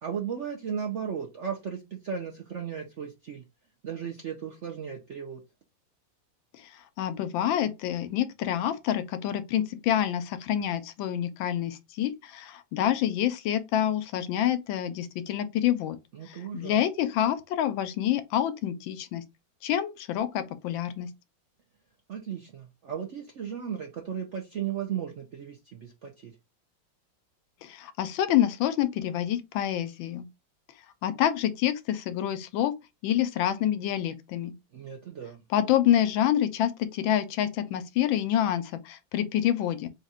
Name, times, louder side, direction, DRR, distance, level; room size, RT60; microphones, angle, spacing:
voice 1, 0.0-3.4 3.8-5.4 16.1-16.8 22.1-26.3 34.7-35.4, right 8 dB, 70° right, 0.6 m, -35 dB
voice 2, 7.0-16.0 16.3-19.2 19.6-21.1 27.6-30.3 31.0-32.7 33.0-34.5 35.5-39.9, left 11 dB, 90° left, 1.4 m, -27 dB
3.8 x 2.4 x 4.2 m
omnidirectional pair, 2.1 m